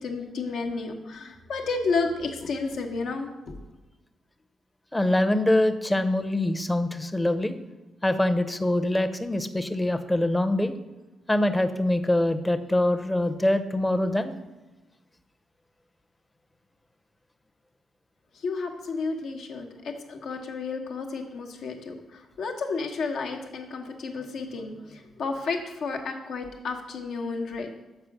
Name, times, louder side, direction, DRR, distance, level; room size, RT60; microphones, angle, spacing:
voice 1, 0.0-3.3 18.4-21.9 22.4-27.7, left 4 dB, 75° left, 2 dB, 1.0 m, -31 dB
voice 2, 4.9-7.6 8.0-10.7 11.3-14.4, left 1 dB, 15° left, 9 dB, 0.6 m, -24 dB
6.7 x 4.9 x 5.9 m, 1.1 s
cardioid pair, 80°, 0 cm